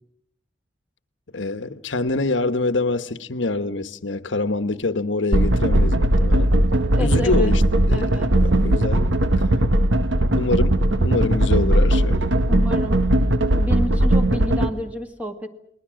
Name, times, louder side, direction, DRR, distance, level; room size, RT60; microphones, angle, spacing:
voice 1, 1.3-6.5 7.0-7.6 7.9-9.1 10.3-12.2, left 3 dB, 80° left, 1.1 m, -25 dB
sound 1, 5.3-14.7, right 1 dB, 85° right, 1.5 m, -18 dB
voice 2, 6.9-7.5 7.9-8.3 12.5-13.0 13.5-15.5, left 1 dB, 10° right, 1.9 m, -30 dB
30.0 x 21.0 x 6.3 m
head